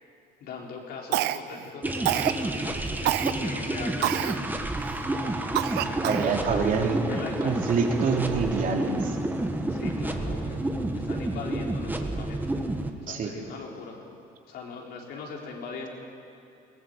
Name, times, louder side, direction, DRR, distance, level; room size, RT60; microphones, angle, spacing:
voice 1, 0.4-4.4 5.0-7.6 9.7-10.6 10.9-12.6 13.0-14.0 14.5-15.9, left 4 dB, 70° left, 0 dB, 4.1 m, -41 dB
Cough, 1.1-1.6 2.0-2.4 3.0-3.3 4.0-4.4 4.9-5.0 5.5-6.3, right 14 dB, 85° right, 0.8 m, -26 dB
sound 1, 1.8-12.9, right 1 dB, 10° right, 1.6 m, -30 dB
voice 2, 6.0-7.0 7.4-9.1 13.1-13.3, right 5 dB, 55° right, 1 dB, 3.2 m, -26 dB
21.5 x 18.0 x 8.0 m, 2.6 s
cardioid pair, 110°, 17 cm